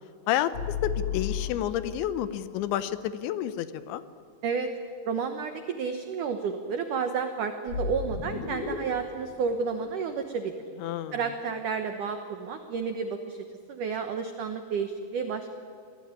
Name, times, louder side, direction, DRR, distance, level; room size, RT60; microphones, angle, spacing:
voice 1, 0.3-4.0 10.8-11.2, left 11 dB, 80° left, 14 dB, 3.0 m, -30 dB
sound 1, 0.5-2.1 7.7-10.8, left 6 dB, 55° left, 2.5 m, -34 dB
voice 2, 5.1-10.5 11.1-15.5, right 5 dB, 85° right, 7 dB, 1.8 m, -31 dB
25.5 x 18.5 x 9.7 m, 2.4 s
omnidirectional pair, 5.5 m